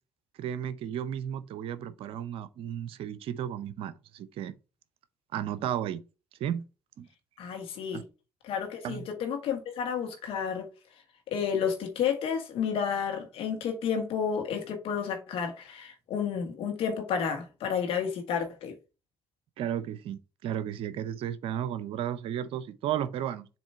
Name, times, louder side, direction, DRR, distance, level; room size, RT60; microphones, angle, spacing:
voice 1, 0.4-4.5 5.3-6.0 6.4-6.6 7.0-7.1 7.9-8.0 8.8-9.1 19.6-23.5, right 10 dB, 60° right, 0.5 m, -33 dB
voice 2, 7.4-8.0 8.4-10.7 11.3-18.7, left 7 dB, 65° left, 1.6 m, -31 dB
7.2 x 3.0 x 4.5 m
figure-of-eight pair, 45°, 10 cm